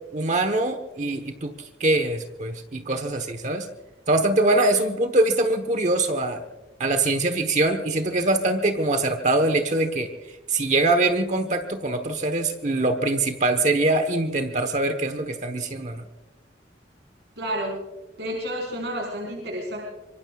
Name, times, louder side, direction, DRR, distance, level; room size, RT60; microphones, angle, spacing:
voice 1, 0.1-3.7 4.1-6.4 6.8-10.1 10.5-16.0, right 2 dB, 40° right, 7 dB, 1.1 m, -23 dB
voice 2, 17.4-17.7 18.2-19.8, equal, 65° right, -2 dB, 4.8 m, -30 dB
25.0 x 24.5 x 2.4 m, 1.1 s
head